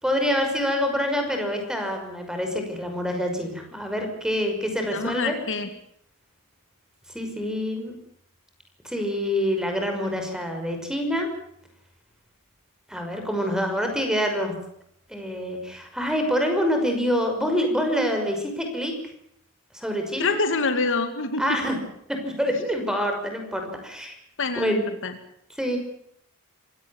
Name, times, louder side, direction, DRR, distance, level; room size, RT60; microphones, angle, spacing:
voice 1, 0.0-5.3 7.1-8.0 8.8-11.3 12.9-14.5 15.1-18.9 19.7-20.4 21.4-21.8 22.2-24.1 24.6-24.8 25.6-25.8, equal, 5° right, 4 dB, 5.8 m, -26 dB
voice 2, 4.9-5.7 20.2-21.4 24.4-25.1, left 3 dB, 60° left, 8 dB, 2.3 m, -26 dB
26.5 x 17.5 x 7.2 m, 0.72 s
head